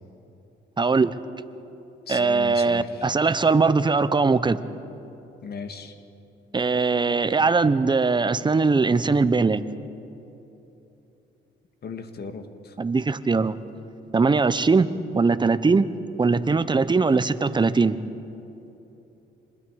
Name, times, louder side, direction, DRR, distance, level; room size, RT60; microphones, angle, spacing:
voice 1, 0.8-1.2 2.1-4.6 6.5-9.6 12.8-13.6 14.1-15.9 16.2-18.0, right 4 dB, 25° right, 13 dB, 0.9 m, -21 dB
voice 2, 2.1-3.1 5.4-5.9 11.8-12.7, left 5 dB, 55° left, 7 dB, 1.8 m, -37 dB
27.5 x 21.0 x 4.9 m, 2.9 s
cardioid pair, 90°, 20 cm